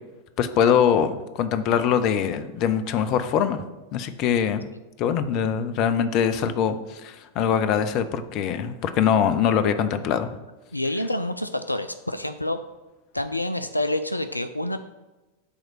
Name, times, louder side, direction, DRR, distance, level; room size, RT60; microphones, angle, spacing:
voice 1, 0.4-3.6 3.9-4.6 5.0-10.3, left 8 dB, 40° left, 11 dB, 0.6 m, -23 dB
voice 2, 10.7-12.6 13.1-14.8, left 1 dB, 85° left, 10 dB, 0.3 m, -27 dB
8.5 x 3.2 x 6.3 m, 1.1 s
figure-of-eight pair, 90°, 0 cm